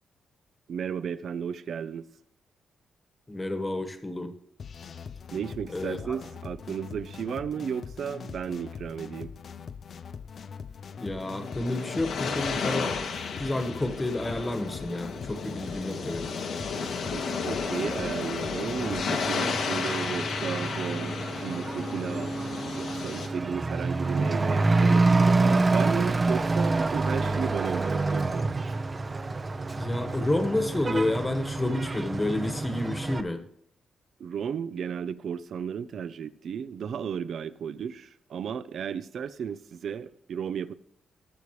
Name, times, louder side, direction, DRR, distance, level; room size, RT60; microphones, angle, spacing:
voice 1, 0.7-2.1 5.3-9.3 17.1-22.3 22.8-28.5 34.2-40.7, right 7 dB, 65° right, 0.6 m, -34 dB
voice 2, 3.3-4.3 5.7-6.2 11.0-12.9 13.4-16.3 29.7-33.4, left 1 dB, 20° left, 1.4 m, -30 dB
sound 1, 4.6-19.4, left 6 dB, 55° left, 0.5 m, -42 dB
sound 2, 11.0-23.3, left 5 dB, 80° left, 1.8 m, -33 dB
Truck / Accelerating revving vroom, 18.8-33.2, right 3 dB, 30° right, 0.7 m, -27 dB
20.0 x 6.8 x 3.2 m
cardioid pair, 100°, 0 cm